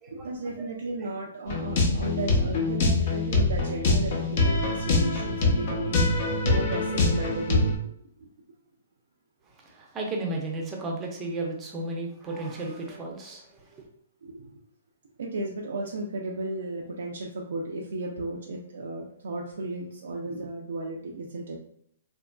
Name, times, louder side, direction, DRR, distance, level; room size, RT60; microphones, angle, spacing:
voice 1, 0.1-7.8 8.2-8.3 14.2-14.6 15.2-21.6, right 2 dB, 75° right, -1 dB, 0.4 m, -34 dB
sound 1, 1.5-7.8, left 2 dB, 50° left, 0.7 m, -24 dB
voice 2, 9.7-13.8, right 2 dB, 20° right, 0 dB, 0.6 m, -34 dB
2.8 x 2.5 x 2.2 m, 0.68 s
hypercardioid pair, 150°, 0 cm